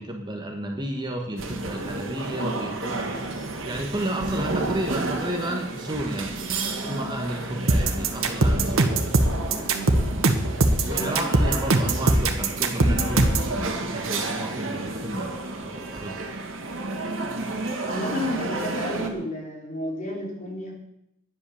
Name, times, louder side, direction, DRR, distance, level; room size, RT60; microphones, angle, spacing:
voice 1, 0.0-3.1 3.6-6.3 6.8-9.0 10.8-15.3 15.6-16.2, right 1 dB, 20° right, 2 dB, 1.4 m, -32 dB
sound 1, 1.4-19.1, right 2 dB, 65° right, 2.0 m, -31 dB
sound 2, 7.7-13.5, right 2 dB, 90° right, 1.4 m, -20 dB
voice 2, 9.5-9.9 10.9-11.4 17.0-17.4 17.8-20.7, equal, 35° left, -1 dB, 3.8 m, -32 dB
11.0 x 10.0 x 7.1 m, 0.83 s
head